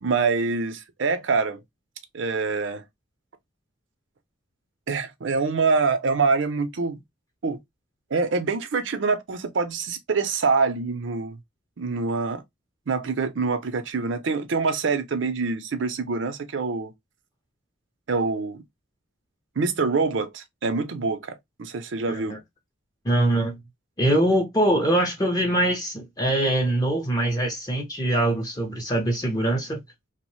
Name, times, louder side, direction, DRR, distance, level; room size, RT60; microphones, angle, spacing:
voice 1, 0.0-1.6 2.1-2.8 4.9-7.0 7.4-7.6 8.1-11.4 11.8-12.4 12.9-16.9 18.1-18.6 19.6-22.3, right 4 dB, 70° right, 0.6 m, -25 dB
voice 2, 22.1-22.4 23.0-23.6 24.0-29.8, right 1 dB, 20° left, 0.6 m, -23 dB
2.9 x 2.1 x 3.0 m
head